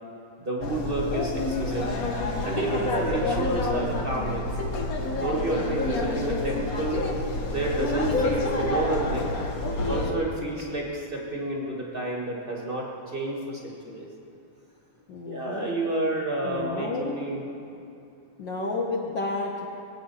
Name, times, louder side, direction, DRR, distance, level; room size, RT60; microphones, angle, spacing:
voice 1, 0.4-1.8 2.4-4.6 5.2-7.0 7.5-9.3 9.8-14.1 15.3-17.4, right 2 dB, 35° right, -2 dB, 0.8 m, -30 dB
sound 1, 0.6-10.1, left 2 dB, 90° left, 0.7 m, -28 dB
voice 2, 15.1-15.8 16.4-17.1 18.4-19.7, left 3 dB, 60° left, -2 dB, 1.2 m, -31 dB
21.5 x 8.6 x 5.6 m, 2.6 s
omnidirectional pair, 3.5 m